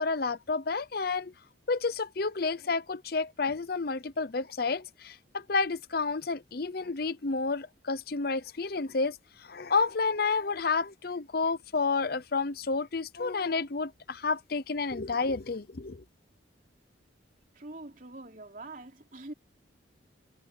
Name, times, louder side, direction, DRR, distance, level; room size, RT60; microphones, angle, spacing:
voice 1, 0.0-1.3 1.7-16.0, left 4 dB, 50° left, 0.7 m, -30 dB
voice 2, 17.5-19.3, right 2 dB, 45° right, 3.5 m, -44 dB
head